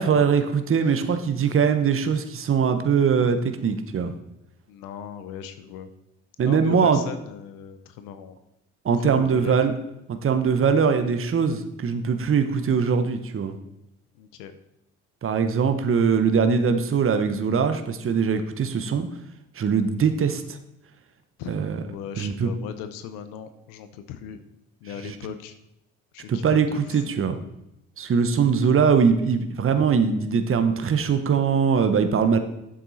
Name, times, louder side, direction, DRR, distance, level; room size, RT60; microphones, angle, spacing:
voice 1, 0.0-4.1 6.4-7.0 8.8-9.7 10.1-13.6 15.2-19.1 19.5-20.6 21.5-21.8 22.2-22.5 25.0-25.1 26.3-27.4 28.0-32.4, right 6 dB, 40° right, 8 dB, 1.0 m, -22 dB
voice 2, 4.7-5.9 6.4-8.4 9.0-9.5 14.2-14.5 21.4-24.4 24.8-25.6 26.1-27.0 28.3-28.4, left 8 dB, 90° left, 10 dB, 0.7 m, -38 dB
8.7 x 7.5 x 4.1 m, 0.86 s
supercardioid pair, 60°, 32 cm